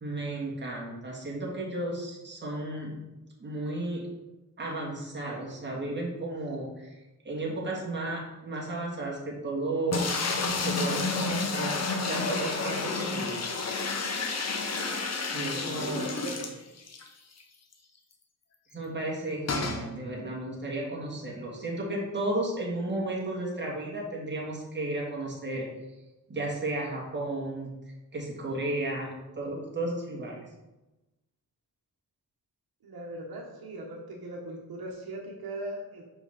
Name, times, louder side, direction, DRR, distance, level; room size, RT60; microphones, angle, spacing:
voice 1, 0.0-3.0 3.4-4.0 4.6-7.0 7.2-10.1 10.6-11.8 12.0-13.5 15.3-16.0 18.7-25.7 26.3-27.7 28.1-30.4, right 2 dB, 30° right, -3 dB, 1.8 m, -33 dB
sound 1, 9.9-17.1 17.4-17.5 17.7-17.8 19.5-19.8, left 3 dB, 45° left, 0.8 m, -30 dB
voice 2, 15.5-16.6 32.8-36.0, right 1 dB, 75° right, 0 dB, 1.2 m, -39 dB
5.8 x 5.4 x 4.9 m, 1.0 s
wide cardioid pair, 150°, 37 cm